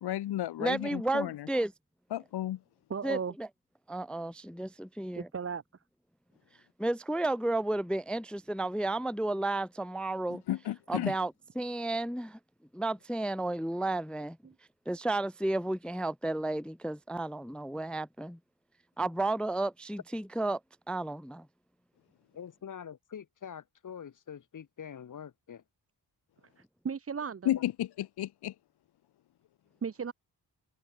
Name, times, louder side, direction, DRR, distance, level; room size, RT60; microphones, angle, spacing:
voice 1, 0.0-1.5 2.1-2.6 10.5-11.2 27.5-28.5, left 13 dB, 80° left, 0.6 m, -33 dB
voice 2, 0.6-1.7 3.0-3.5 3.9-5.3 6.8-10.4 10.9-12.4 12.7-14.4 14.9-18.4 19.0-20.6 20.9-21.5, right 2 dB, 5° left, 0.4 m, -32 dB
voice 3, 2.9-3.3 5.2-5.6 14.4-14.5 26.8-27.5 29.8-30.1, right 6 dB, 35° right, 1.0 m, -35 dB
voice 4, 22.3-25.6 27.4-27.6, left 8 dB, 50° left, 1.2 m, -45 dB
wide cardioid pair, 125°, 39 cm